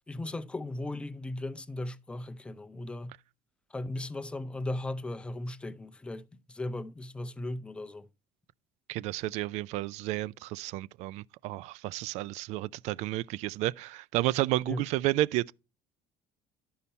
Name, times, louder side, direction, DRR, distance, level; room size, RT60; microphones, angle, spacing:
voice 1, 0.1-3.1 3.7-8.1 14.7-14.8, left 2 dB, 10° left, 0.5 m, -37 dB
voice 2, 8.9-15.5, right 17 dB, 65° right, 0.4 m, -31 dB
11.5 x 5.6 x 4.2 m
cardioid pair, 165°, 12 cm